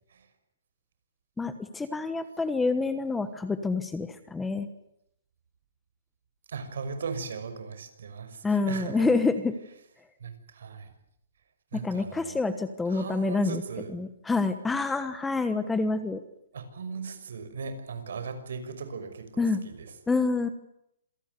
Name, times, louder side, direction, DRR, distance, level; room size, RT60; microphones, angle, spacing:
voice 1, 1.4-4.7 8.4-9.5 11.7-13.6 13.9-16.2 19.4-19.6 20.1-20.5, left 3 dB, 5° left, 11 dB, 1.1 m, -27 dB
voice 2, 6.5-9.1 10.2-10.9 11.7-12.4 12.9-13.9 16.5-19.9, right 5 dB, 65° right, 9 dB, 5.9 m, -38 dB
27.0 x 18.5 x 9.6 m, 0.77 s
hypercardioid pair, 170°, 0 cm